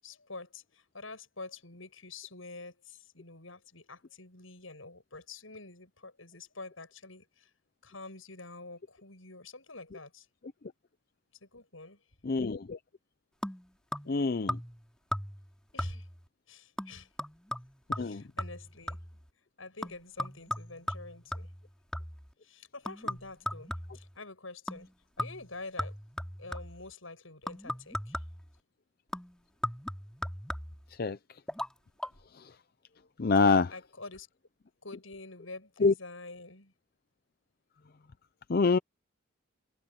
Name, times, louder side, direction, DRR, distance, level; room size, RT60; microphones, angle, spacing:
voice 1, 0.0-7.5 7.8-10.3 11.4-12.1 14.0-14.3 15.7-16.1 16.5-17.1 17.9-19.0 19.6-21.5 22.4-24.9 25.2-26.0 26.4-28.2 33.4-34.3 34.8-36.7, left 3 dB, 80° left, 7.9 m, -47 dB
voice 2, 12.2-12.8 14.1-14.6 18.0-18.2 31.0-31.2 32.4-32.5 33.2-33.7 35.8-35.9 38.5-38.8, left 4 dB, 50° left, 0.5 m, -25 dB
sound 1, 13.4-14.2 14.5-14.8 15.1-15.5 15.8-16.2 16.8-19.2 19.8-22.3 22.9-24.1 24.7-24.9 25.2-26.8 27.5-28.5 29.1-30.9 31.5-31.7 32.0-32.1, equal, 5° left, 2.7 m, -38 dB
head